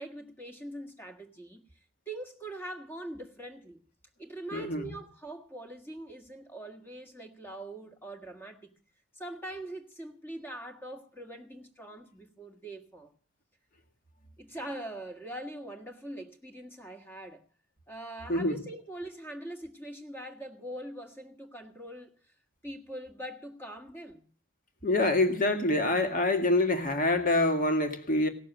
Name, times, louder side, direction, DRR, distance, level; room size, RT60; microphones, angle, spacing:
voice 1, 0.0-1.6 2.1-3.8 4.2-8.8 9.1-13.1 14.4-17.4 17.9-22.1 22.6-24.2, right 1 dB, 10° left, 1.6 m, -42 dB
voice 2, 4.5-4.9 18.3-18.6 24.8-28.3, left 2 dB, 40° left, 2.0 m, -26 dB
17.0 x 6.9 x 9.1 m
head